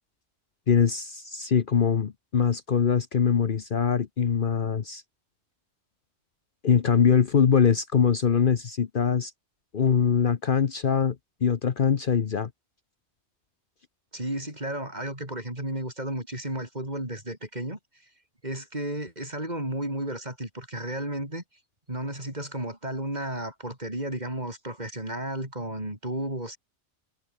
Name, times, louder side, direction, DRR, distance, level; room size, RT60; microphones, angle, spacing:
voice 1, 0.7-5.0 6.6-9.3 9.7-11.2 11.4-12.5, left 7 dB, 50° left, 1.0 m, -23 dB
voice 2, 14.1-18.1 18.4-21.4 21.9-26.6, right 1 dB, 40° right, 6.0 m, -33 dB
omnidirectional pair, 1.2 m